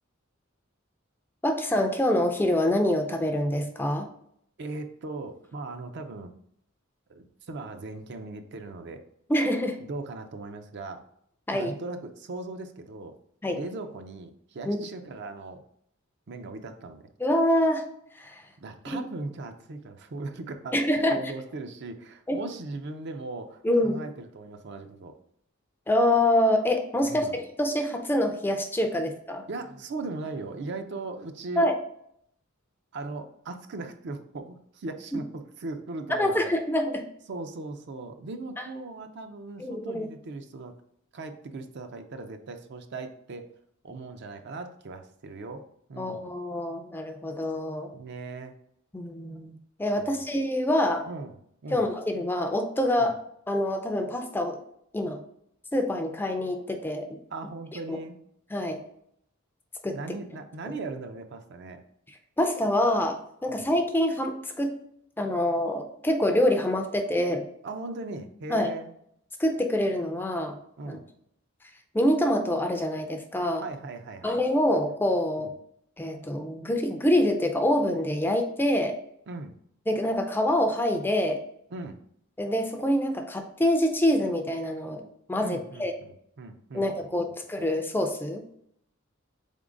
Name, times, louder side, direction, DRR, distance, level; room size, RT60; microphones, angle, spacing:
voice 1, 1.4-4.1 9.3-9.8 11.5-11.7 13.4-13.6 14.7-14.8 17.2-17.9 18.2-18.4 18.9-19.0 20.7-21.2 22.3-22.4 23.6-24.0 25.9-29.4 31.6-31.8 35.1-35.2 36.1-37.0 39.6-40.1 46.0-47.9 48.9-49.5 49.8-51.1 51.7-53.2 53.5-54.6 54.9-55.2 55.7-57.1 57.9-58.0 58.5-58.8 59.8-60.0 62.4-64.7 65.2-67.5 68.5-68.7 69.4-70.6 70.9-71.0 71.9-73.6 74.2-75.5 76.0-79.0 79.9-81.4 82.4-85.0 85.3-85.9 86.7-88.4, left 1 dB, 10° left, 5 dB, 0.4 m, -26 dB
voice 2, 4.6-6.3 7.1-9.0 9.8-11.0 11.5-13.1 13.5-15.6 16.3-17.1 18.6-20.8 21.1-25.1 27.0-27.4 28.9-29.0 29.5-31.7 32.9-36.5 37.3-40.7 41.1-43.5 43.8-45.6 45.9-46.3 47.9-48.5 50.0-50.2 51.1-51.4 51.6-51.9 53.0-53.1 57.3-58.2 59.9-61.8 63.5-63.7 67.6-68.9 70.8-71.0 73.6-74.4 75.4-75.5 79.3-79.5 81.7-82.0 85.4-87.4, right 3 dB, 55° right, 7 dB, 0.5 m, -38 dB
3.9 x 3.7 x 3.7 m, 0.71 s
head